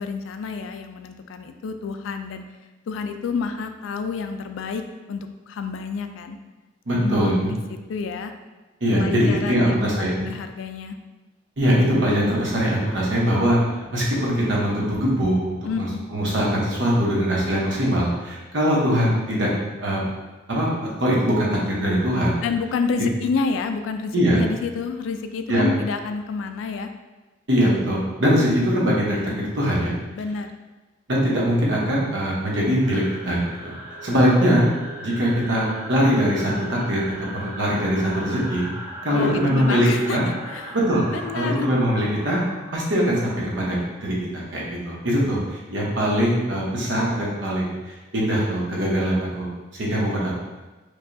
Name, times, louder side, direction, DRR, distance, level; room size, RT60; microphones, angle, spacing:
voice 1, 0.0-2.4 2.9-4.8 5.1-6.4 7.0-7.6 7.9-8.3 8.9-11.0 15.6-16.0 22.4-26.9 30.1-30.5 39.1-40.2 40.5-40.8 41.1-41.7, left 5 dB, 80° left, 7 dB, 0.3 m, -29 dB
voice 2, 6.9-7.5 8.8-10.2 11.6-13.6 13.9-15.4 15.8-15.9 16.1-20.1 20.5-20.7 21.0-22.4 23.0-23.1 24.1-24.4 25.5-25.7 27.5-30.0 31.1-33.4 33.6-33.8 34.0-34.7 35.0-37.0 37.3-38.7 39.0-40.2 40.7-41.0 41.3-42.4 42.7-43.8 44.0-49.5 49.8-50.4, equal, 70° right, -4 dB, 0.9 m, -22 dB
sound 1, 32.8-44.1, right 1 dB, 15° right, 1.1 m, -38 dB
4.7 x 2.3 x 2.6 m, 1.2 s
head